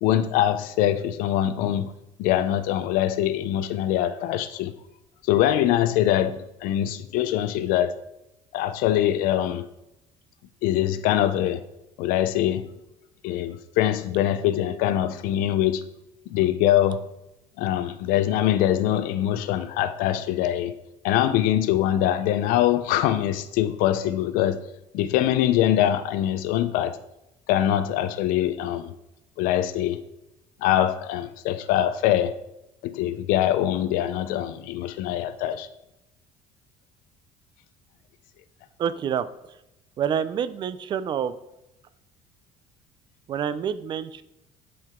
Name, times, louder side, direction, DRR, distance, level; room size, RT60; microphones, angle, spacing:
voice 1, 0.0-1.9 2.2-4.7 5.3-8.0 8.5-9.7 10.6-11.6 12.0-12.7 13.2-15.8 16.3-17.0 17.6-20.8 21.0-24.6 24.9-27.0 27.5-28.9 29.4-30.0 30.6-32.4 32.8-35.7, left 12 dB, 90° left, 0.6 m, -23 dB
voice 2, 38.8-39.3 40.0-41.3 43.3-44.2, right 8 dB, 35° right, 0.4 m, -27 dB
11.0 x 4.7 x 3.6 m
cardioid pair, 165°, 14 cm